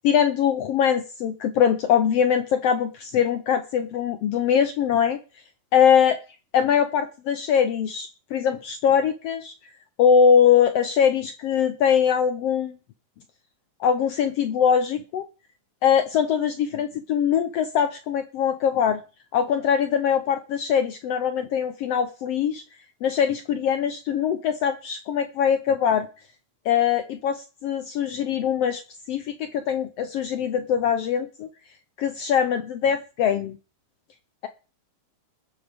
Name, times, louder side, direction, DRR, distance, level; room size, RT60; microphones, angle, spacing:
voice 1, 0.0-5.2 5.7-6.2 6.5-9.5 10.0-12.7 13.8-15.3 15.8-19.0 19.3-22.6 23.0-26.1 26.6-28.8 29.1-31.5 32.0-33.6, left 8 dB, 75° left, 9 dB, 1.5 m, -22 dB
20.0 x 10.0 x 3.5 m, 0.35 s
omnidirectional pair, 3.5 m